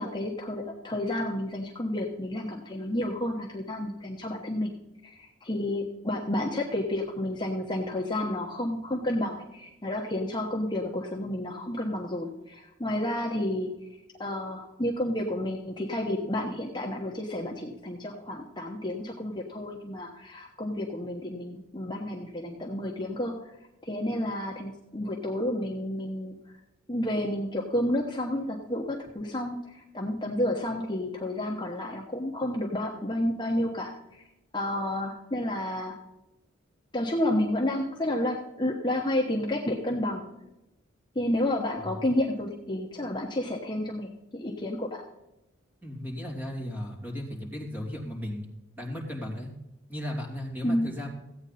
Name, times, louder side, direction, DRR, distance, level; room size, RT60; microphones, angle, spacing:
voice 1, 0.0-4.7 5.0-13.7 14.2-23.5 23.8-26.3 26.9-34.2 34.5-36.0 36.9-40.2 41.1-45.0 50.6-50.9, left 1 dB, 20° left, 0 dB, 1.1 m, -30 dB
voice 2, 45.8-48.4 48.8-49.5 49.9-51.1, left 1 dB, 10° right, -2 dB, 2.9 m, -35 dB
15.5 x 8.9 x 4.2 m, 0.93 s
head